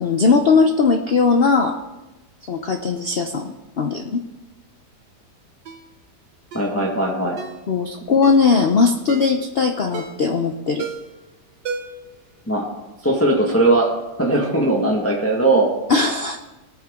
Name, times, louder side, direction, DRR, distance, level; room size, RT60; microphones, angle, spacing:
voice 1, 0.0-1.8 2.5-4.2 7.7-10.9 15.9-16.4, left 4 dB, 50° left, 5 dB, 0.7 m, -19 dB
Ringtone, 5.7-5.9 6.5-6.7 7.4-7.6 8.2-8.5 9.1-9.4 9.9-10.3 10.8-11.2 11.7-12.1 12.4-12.5, right 5 dB, 85° right, 1.7 m, -33 dB
voice 2, 6.5-7.4 12.5-12.7 13.0-13.9 14.2-15.7, right 2 dB, 10° left, -2 dB, 1.5 m, -19 dB
20.0 x 9.1 x 3.7 m, 1.1 s
omnidirectional pair, 1.8 m